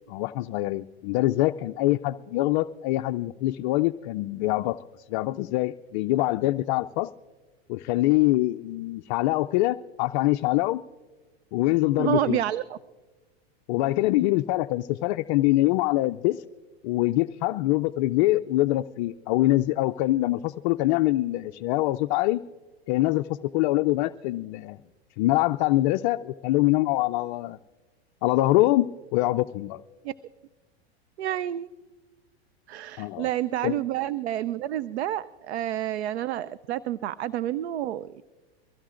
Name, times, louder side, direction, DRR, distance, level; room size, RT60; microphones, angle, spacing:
voice 1, 0.1-4.8 5.1-7.1 7.7-10.8 11.5-12.4 13.7-16.4 16.8-22.4 22.9-24.8 25.2-27.6 28.2-29.8 33.0-33.3 33.6-33.8, left 17 dB, 45° left, 9 dB, 0.4 m, -24 dB
voice 2, 12.0-12.8 30.0-30.1 31.2-31.7 32.7-38.2, right 12 dB, 80° right, 16 dB, 0.6 m, -29 dB
23.5 x 16.5 x 2.5 m, 1.2 s
hypercardioid pair, 120°, 32 cm